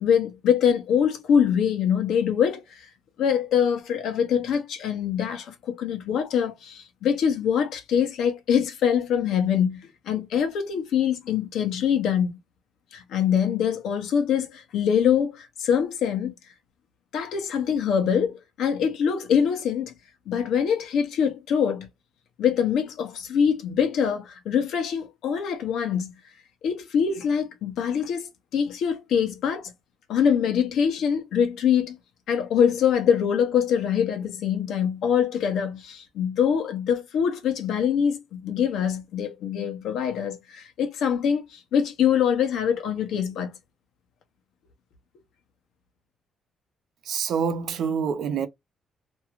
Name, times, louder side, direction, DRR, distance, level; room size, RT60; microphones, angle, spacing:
voice 1, 0.0-2.8 3.2-12.3 12.9-16.3 17.1-19.9 20.3-21.9 22.4-26.1 26.6-29.7 30.1-32.0 32.3-43.5, left 8 dB, 80° left, 0.9 m, -24 dB
voice 2, 47.1-48.5, right 6 dB, 75° right, 0.7 m, -26 dB
2.8 x 2.3 x 3.0 m
cardioid pair, 90°, 0 cm